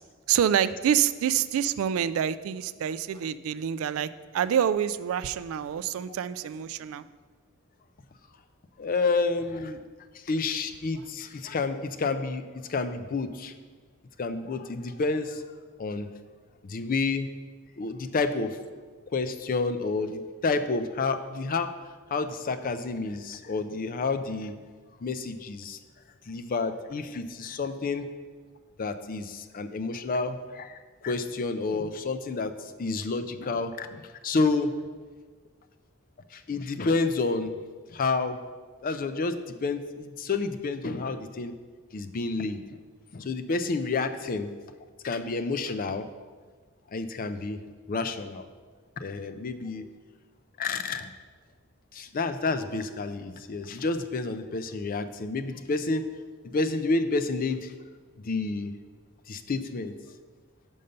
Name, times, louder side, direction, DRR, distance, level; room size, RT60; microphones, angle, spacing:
voice 1, 0.3-7.0, right 9 dB, 70° right, 15 dB, 0.3 m, -27 dB
voice 2, 8.8-9.8 10.3-12.4 12.7-13.5 14.2-15.4 15.8-16.1 16.7-17.3 17.8-18.6 19.1-21.7 22.1-24.5 25.0-25.8 26.3-28.0 28.8-30.7 31.0-32.5 32.8-33.9 34.2-34.7 36.5-37.5 37.9-38.4 38.8-41.5 41.9-42.6 43.1-44.5 45.0-46.1 46.9-47.6 47.9-48.4 49.0-49.9 50.6-51.1 52.0-56.0 56.5-57.6 58.3-58.7 59.3-59.9, left 3 dB, 40° left, 10 dB, 0.4 m, -29 dB
6.8 x 5.4 x 5.2 m, 1.5 s
head